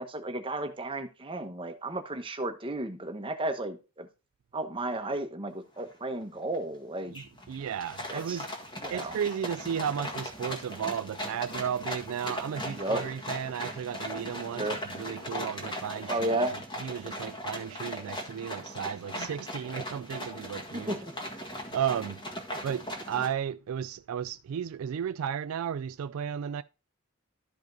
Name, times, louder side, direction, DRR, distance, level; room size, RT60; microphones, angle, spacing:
voice 1, 0.0-4.1 4.5-7.1 8.1-8.4 8.8-9.1 12.8-13.0 14.6-14.8 16.1-16.5 20.9-21.1, right 2 dB, 25° right, 1.0 m, -33 dB
sound 1, 5.9-6.0 6.3-6.7 7.1-23.3, equal, 20° left, 1.6 m, -39 dB
voice 2, 7.1-8.5 8.9-16.4 16.8-21.0 21.4-22.3 22.6-26.6, right 8 dB, 70° right, 0.3 m, -34 dB
12.0 x 5.0 x 3.9 m
head